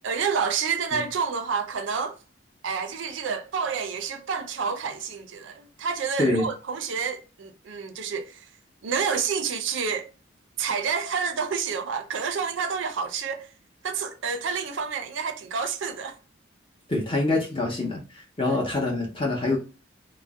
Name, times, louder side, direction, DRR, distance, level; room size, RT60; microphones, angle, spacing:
voice 1, 0.0-2.2 2.6-8.5 8.8-10.1 10.6-13.5 13.8-16.2 18.4-18.6, right 6 dB, 80° right, 0.4 m, -29 dB
voice 2, 16.9-19.6, left 2 dB, 25° left, 0.8 m, -25 dB
2.5 x 2.0 x 3.5 m
head